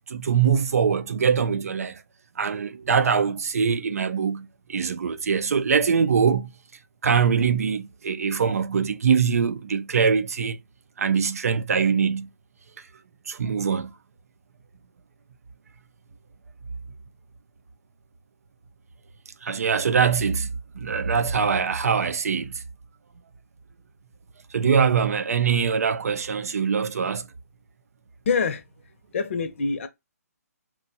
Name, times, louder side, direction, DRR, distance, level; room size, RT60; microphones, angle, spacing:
voice 1, 0.1-2.0 2.4-6.5 7.0-10.6 11.0-12.3 13.3-13.9 19.4-20.5 20.8-22.6 24.5-27.3, right 6 dB, 65° right, 0.4 m, -23 dB
voice 2, 28.3-28.6 29.1-29.9, left 5 dB, 50° left, 0.7 m, -25 dB
2.9 x 2.2 x 2.7 m
figure-of-eight pair, 145°, 9 cm